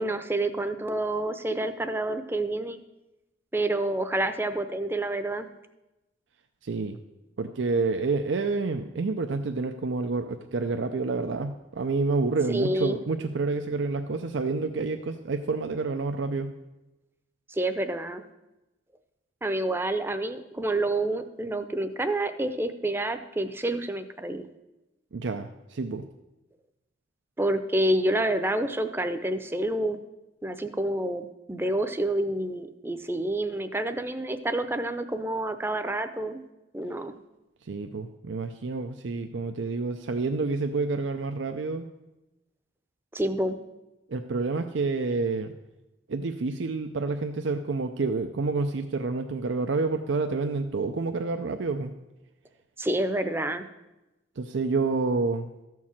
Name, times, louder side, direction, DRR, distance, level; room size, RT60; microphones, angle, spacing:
voice 1, 0.0-2.8 3.5-5.5 12.5-13.0 17.5-18.2 19.4-24.4 27.4-30.0 30.4-36.4 36.7-37.1 43.1-43.6 52.8-53.7, right 1 dB, 10° right, 10 dB, 0.6 m, -28 dB
voice 2, 6.6-7.0 7.4-16.5 25.1-26.0 37.7-41.9 44.1-45.5 46.1-51.9 54.4-55.5, right 3 dB, 85° right, 7 dB, 0.5 m, -28 dB
13.5 x 4.7 x 7.2 m, 1.0 s
head